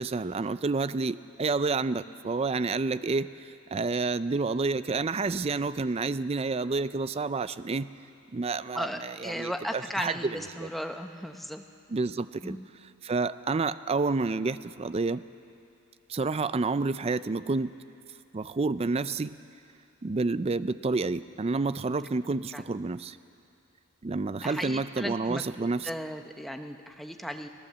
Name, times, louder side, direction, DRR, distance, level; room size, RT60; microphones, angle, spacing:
voice 1, 0.0-7.9 8.3-10.7 11.9-12.6 13.0-15.2 16.1-17.7 18.3-19.4 20.0-23.2 24.0-25.9, right 3 dB, 25° right, 15 dB, 0.4 m, -29 dB
voice 2, 8.7-11.6 12.4-12.7 22.5-22.6 24.4-25.4 25.8-27.5, equal, ahead, 6 dB, 0.8 m, -36 dB
24.5 x 16.0 x 7.5 m, 2.7 s
head